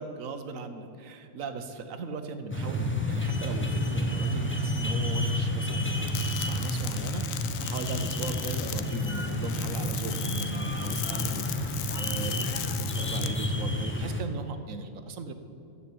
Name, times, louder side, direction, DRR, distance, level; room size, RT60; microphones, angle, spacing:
voice 1, 0.0-7.2 7.6-15.3, right 4 dB, 80° right, 8 dB, 1.2 m, -38 dB
sound 1, 2.5-14.2, left 1 dB, 10° left, 0.7 m, -30 dB
sound 2, 6.1-13.3, left 12 dB, 80° left, 1.0 m, -38 dB
9.5 x 7.3 x 8.4 m, 2.7 s
omnidirectional pair, 1.4 m